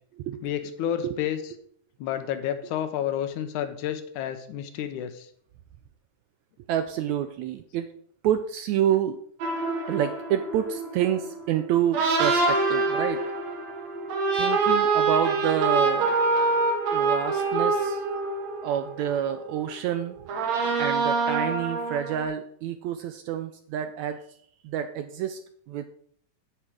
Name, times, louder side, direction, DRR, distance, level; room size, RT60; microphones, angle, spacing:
voice 1, 0.4-1.6 2.0-5.3, left 10 dB, 75° left, 9 dB, 2.1 m, -30 dB
voice 2, 6.7-7.9 8.2-9.2 9.9-13.2 14.3-16.2 16.9-18.0 18.6-20.2 20.8-24.2 24.6-25.4 25.7-25.8, right 10 dB, 85° right, 9 dB, 1.7 m, -28 dB
sound 1, 9.4-19.8 20.2-22.3, right 3 dB, 60° right, 2.7 m, -26 dB
8.9 x 8.2 x 4.8 m, 0.63 s
omnidirectional pair, 3.7 m